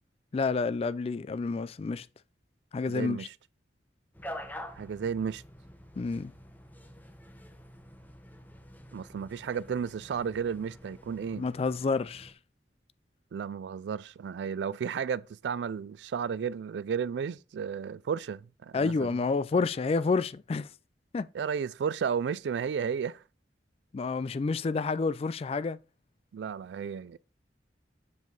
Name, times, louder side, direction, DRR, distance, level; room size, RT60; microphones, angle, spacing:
voice 1, 0.3-2.1 2.7-3.3 6.0-6.3 11.4-12.3 18.7-20.7 21.1-21.3 23.9-25.8, left 4 dB, 35° left, 0.3 m, -29 dB
voice 2, 2.9-3.3 4.8-5.4 8.9-11.4 13.3-19.1 21.3-23.2 26.3-27.2, right 7 dB, 75° right, 0.3 m, -33 dB
sound 1, 4.1-12.3, equal, 10° left, 0.8 m, -47 dB
7.3 x 5.0 x 3.9 m
head